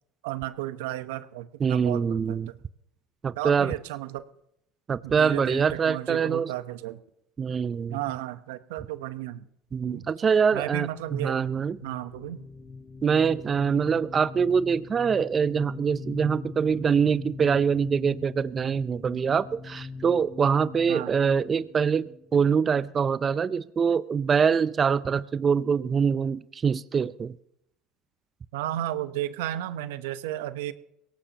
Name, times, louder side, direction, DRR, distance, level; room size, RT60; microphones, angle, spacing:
voice 1, 0.2-2.6 3.4-4.2 5.0-7.0 7.9-9.5 9.8-10.1 10.5-11.4 11.8-12.4 20.9-21.2 28.5-30.7, right 14 dB, 85° right, 12 dB, 0.9 m, -33 dB
voice 2, 1.6-2.5 3.2-3.7 4.9-6.5 7.4-8.0 9.7-10.9 11.2-11.8 13.0-27.3, right 6 dB, 35° right, 15 dB, 0.6 m, -24 dB
sound 1, 10.9-23.1, left 4 dB, 35° left, 1.8 m, -42 dB
22.5 x 18.0 x 3.0 m, 0.78 s
supercardioid pair, 85°, 0 cm